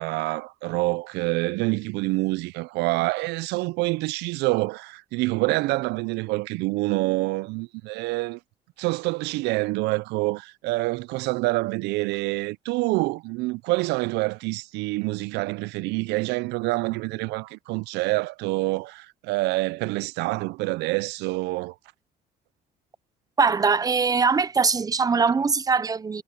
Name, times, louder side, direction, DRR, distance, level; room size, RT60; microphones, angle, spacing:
voice 1, 0.0-8.4 8.8-21.7, right 22 dB, 90° right, 0.4 m, -26 dB
voice 2, 23.4-26.2, right 5 dB, 20° right, 0.6 m, -22 dB
cardioid pair, 110°, 17 cm